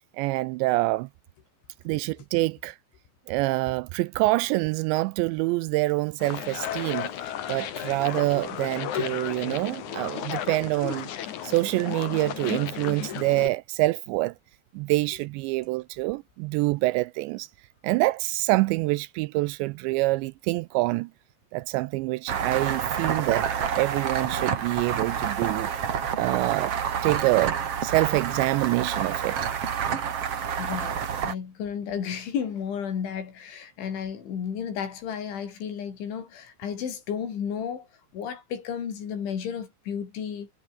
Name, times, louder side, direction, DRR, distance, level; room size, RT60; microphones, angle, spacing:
voice 1, 0.2-1.1 1.9-2.8 3.3-7.1 7.5-11.1 11.4-14.3 14.7-17.5 17.8-21.1 21.5-23.5 23.8-25.7 26.2-26.7 27.0-29.4, right 21 dB, 85° right, 2.6 m, -26 dB
sound 1, 6.2-13.5, left 10 dB, 55° left, 2.3 m, -34 dB
Merry Christmas, 22.3-31.3, right 8 dB, 45° right, 2.1 m, -28 dB
voice 2, 30.6-37.9 38.1-40.5, left 7 dB, 75° left, 6.5 m, -33 dB
omnidirectional pair, 5.4 m